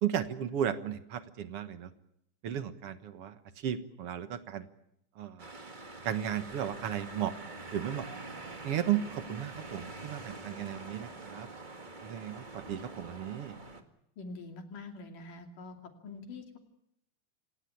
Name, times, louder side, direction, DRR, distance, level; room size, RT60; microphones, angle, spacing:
voice 1, 0.0-1.9 2.4-4.7 5.2-5.5 6.0-7.3 7.7-8.3 8.6-11.5 12.0-13.6, right 10 dB, 55° right, 10 dB, 2.0 m, -35 dB
sound 1, 5.4-13.8, right 3 dB, 20° right, 1.2 m, -45 dB
voice 2, 14.2-15.8 16.0-16.6, left 3 dB, 80° left, 5 dB, 4.2 m, -45 dB
27.5 x 17.5 x 8.6 m, 0.79 s
omnidirectional pair, 3.7 m